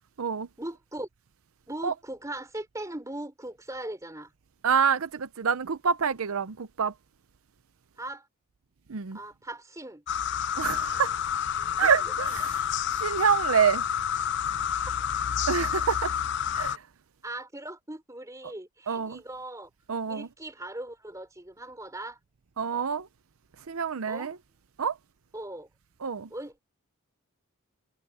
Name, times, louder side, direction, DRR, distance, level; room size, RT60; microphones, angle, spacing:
voice 1, 0.6-1.1 1.7-4.3 8.0-8.3 9.1-10.0 12.2-12.3 17.2-19.7 20.1-22.2 24.1-24.3 25.3-25.7 26.3-26.6, right 1 dB, 15° right, 4.1 m, -39 dB
voice 2, 4.6-6.9 8.9-9.2 10.6-11.1 11.8-12.6 13.0-13.8 15.5-16.1 16.5-16.8 18.9-19.2 19.9-20.3 22.6-23.1 23.7-24.4 24.8-25.0 26.0-26.3, right 6 dB, 80° right, 0.6 m, -27 dB
sound 1, 10.1-16.8, left 8 dB, 55° left, 0.5 m, -29 dB
head